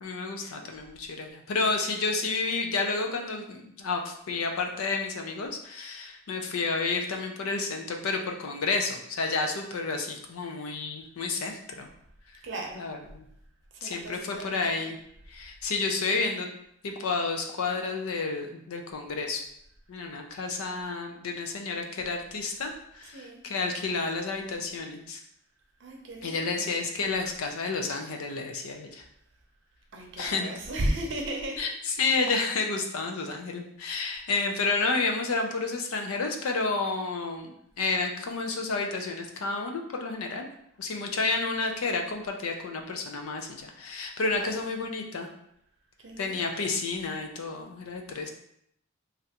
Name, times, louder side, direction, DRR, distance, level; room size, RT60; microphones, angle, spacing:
voice 1, 0.0-11.9 12.8-13.3 13.8-15.0 15.3-16.5 16.8-19.4 19.9-25.2 26.2-29.0 30.2-30.5 31.6-40.4 40.8-45.3 46.2-48.3, left 3 dB, 85° left, 3 dB, 0.5 m, -30 dB
voice 2, 12.4-12.8 13.7-14.9 23.0-23.4 25.8-26.8 29.9-31.7 44.3-44.7 46.0-46.8, right 1 dB, 60° right, 1 dB, 0.6 m, -35 dB
3.2 x 2.5 x 2.8 m, 0.73 s
head